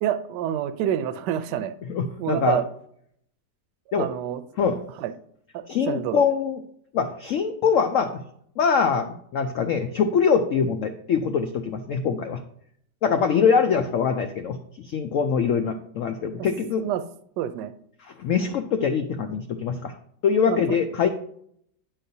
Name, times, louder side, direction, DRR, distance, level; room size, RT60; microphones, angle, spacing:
voice 1, 0.0-1.7 2.2-2.6 4.0-4.4 5.0-5.1 5.5-6.2 16.8-17.0 17.4-17.7 20.5-20.6, right 11 dB, 80° right, 11 dB, 1.2 m, -27 dB
voice 2, 1.9-2.6 3.9-4.1 4.6-4.8 5.7-6.6 6.9-8.1 8.6-12.4 13.0-14.6 14.8-16.8 18.0-19.9 20.2-21.1, left 6 dB, 90° left, 6 dB, 0.6 m, -23 dB
10.0 x 5.6 x 2.7 m, 0.67 s
omnidirectional pair, 1.9 m